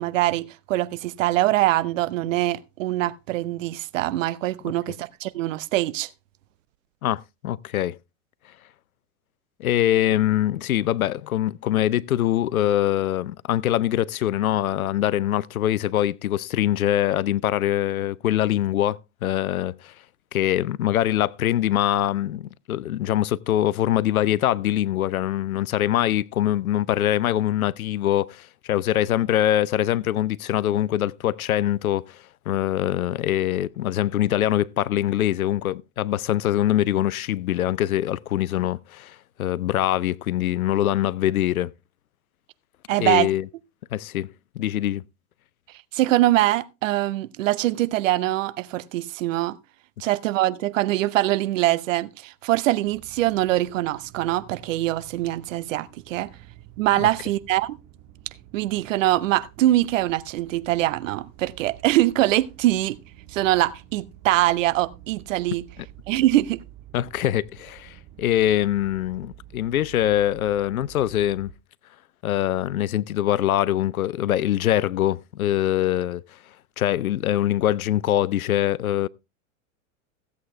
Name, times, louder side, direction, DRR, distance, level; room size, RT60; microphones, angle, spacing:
voice 1, 0.0-6.1 42.9-43.3 45.9-49.6 50.0-56.3 56.8-57.8 58.5-63.0 63.3-65.6 66.1-66.6, right 15 dB, 65° right, 0.8 m, -23 dB
voice 2, 7.0-8.0 9.6-19.9 20.3-32.2 32.5-41.7 43.0-43.5 43.9-44.3 44.6-45.0 57.0-57.1 65.8-65.9 66.9-71.5 72.2-76.2 76.8-79.1, left 12 dB, 90° left, 0.6 m, -23 dB
sound 1, 52.8-71.5, right 13 dB, 40° right, 1.5 m, -49 dB
15.5 x 8.2 x 3.2 m
hypercardioid pair, 100°, 41 cm